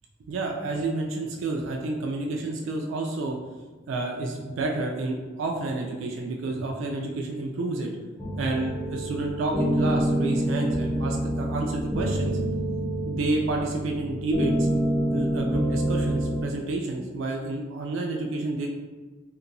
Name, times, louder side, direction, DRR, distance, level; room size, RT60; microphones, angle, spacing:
voice 1, 0.3-3.4 3.9-7.9 8.4-12.4 13.1-14.7 15.1-18.7, right 2 dB, 80° right, 0 dB, 0.3 m, -30 dB
sound 1, 8.2-16.4, right 1 dB, 15° left, 0.4 m, -27 dB
2.8 x 2.2 x 2.5 m, 1.3 s
head